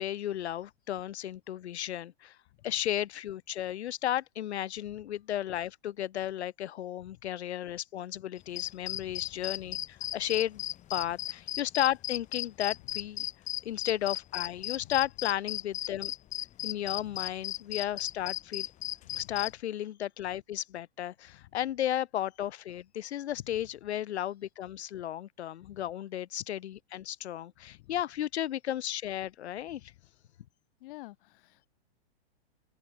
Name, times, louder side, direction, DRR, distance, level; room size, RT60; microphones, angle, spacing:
voice 1, 0.0-2.4 2.6-10.6 10.9-13.3 13.6-16.1 16.6-18.7 19.1-29.9, left 12 dB, 75° left, 1.9 m, -34 dB
sound 1, 8.4-19.5, left 13 dB, 20° left, 0.8 m, -35 dB
voice 2, 30.8-31.7, left 19 dB, 55° left, 1.0 m, -50 dB
open air
hypercardioid pair, 125°, 33 cm